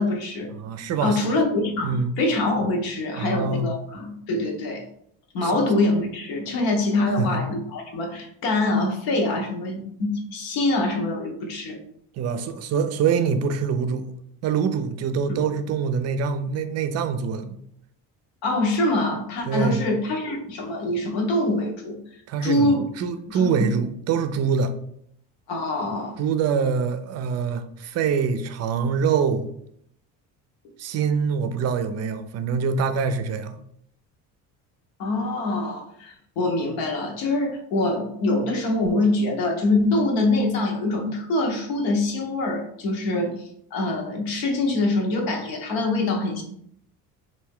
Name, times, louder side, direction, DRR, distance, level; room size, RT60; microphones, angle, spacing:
voice 1, 0.0-0.5 1.0-4.8 5.3-11.8 15.3-15.4 18.4-22.0 22.4-22.8 23.3-23.7 25.5-26.2 35.0-43.3 43.7-46.4, left 2 dB, 80° left, 2 dB, 1.0 m, -24 dB
voice 2, 0.5-1.2 1.8-2.1 3.2-3.7 5.4-5.6 7.2-7.4 12.2-14.1 14.4-17.6 19.5-19.8 22.3-24.7 26.2-29.5 30.8-33.6, right 6 dB, 45° right, 10 dB, 0.4 m, -24 dB
3.3 x 2.6 x 3.5 m, 0.71 s
cardioid pair, 125°, 35 cm